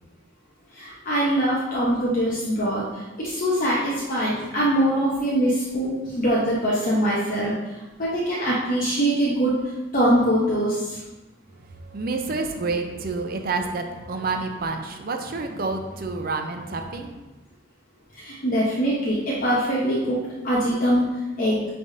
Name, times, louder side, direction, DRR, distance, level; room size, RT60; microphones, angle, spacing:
voice 1, 0.7-7.7 8.0-11.0 18.1-21.7, equal, 50° left, -6 dB, 0.9 m, -23 dB
voice 2, 11.5-17.2, right 3 dB, 50° right, 5 dB, 0.6 m, -29 dB
9.9 x 3.4 x 2.7 m, 1.1 s
head